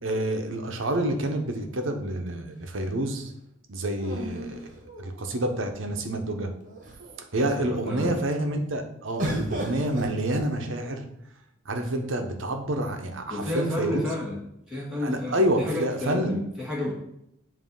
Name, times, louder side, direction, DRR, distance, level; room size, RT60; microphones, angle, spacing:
voice 1, 0.0-3.3 3.7-4.6 5.0-6.5 7.3-11.0 11.7-14.0 15.0-16.3, right 1 dB, 70° right, 5 dB, 0.9 m, -28 dB
sound 1, 0.9-2.0 4.0-5.5 6.2-6.3 6.6-7.2 9.2-11.1 12.0-12.7, right 1 dB, 40° right, 1.4 m, -36 dB
voice 2, 7.6-8.2 13.3-14.4 14.7-16.9, left 2 dB, 5° right, -6 dB, 1.8 m, -31 dB
7.6 x 2.8 x 5.4 m, 0.79 s
head